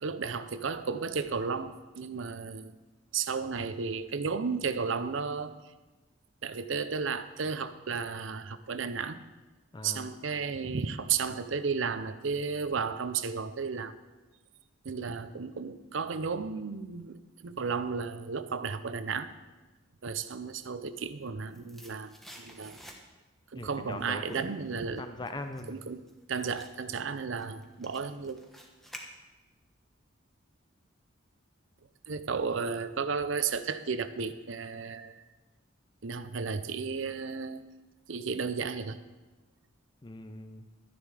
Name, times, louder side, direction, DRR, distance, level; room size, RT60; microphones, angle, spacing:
voice 1, 0.0-2.7 3.1-5.5 6.4-9.2 9.8-13.9 14.8-19.3 20.0-22.8 23.5-25.0 25.7-28.4 32.1-35.2 36.0-37.6 38.1-39.0, right 5 dB, 65° right, 12 dB, 0.6 m, -33 dB
voice 2, 9.7-10.1 23.5-24.5 25.0-25.8 40.0-40.7, left 2 dB, 20° left, 7 dB, 0.5 m, -40 dB
sound 1, 21.5-23.4 23.7-29.6 29.9-30.0, equal, ahead, 1.1 m, -52 dB
12.5 x 10.0 x 4.9 m, 1.2 s
head